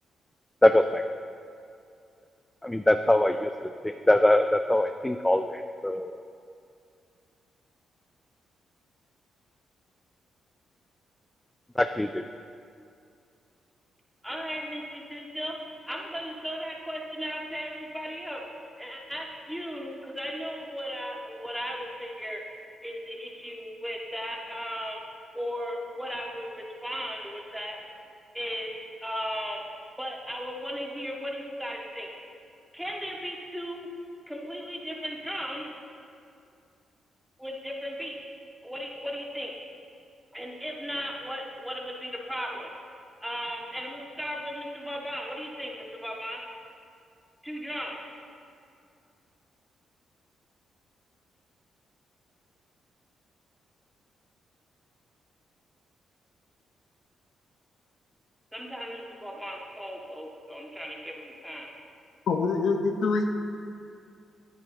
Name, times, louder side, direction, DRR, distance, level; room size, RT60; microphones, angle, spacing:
voice 1, 0.6-1.0 2.6-3.5 3.8-6.2 11.8-12.2, left 1 dB, 15° left, 7 dB, 0.4 m, -23 dB
voice 2, 14.2-15.6 15.9-18.4 18.8-22.4 22.8-25.0 25.3-27.8 28.3-28.7 29.0-29.6 30.0-32.1 32.7-33.9 34.3-35.7 37.4-38.2 38.6-39.6 40.3-42.7 43.2-46.4 47.4-48.0 58.5-61.7, equal, 5° right, -2 dB, 1.8 m, -36 dB
voice 3, 62.3-63.2, left 4 dB, 65° left, 4 dB, 0.6 m, -25 dB
10.5 x 9.0 x 2.9 m, 2.4 s
hypercardioid pair, 45°, 0 cm